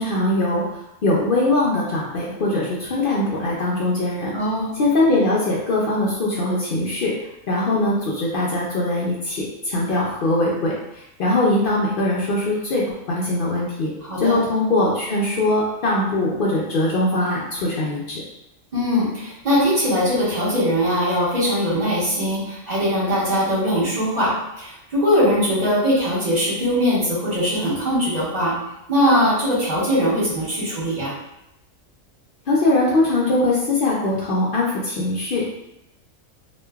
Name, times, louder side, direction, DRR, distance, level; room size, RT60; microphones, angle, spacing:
voice 1, 0.0-4.3 4.8-7.1 7.5-13.9 14.2-18.2 32.5-35.5, left 2 dB, 65° left, -4 dB, 0.5 m, -21 dB
voice 2, 4.3-4.7 14.1-14.4 18.7-28.5 28.9-31.1, equal, 35° right, -9 dB, 1.2 m, -21 dB
2.9 x 2.4 x 2.3 m, 0.88 s
omnidirectional pair, 1.4 m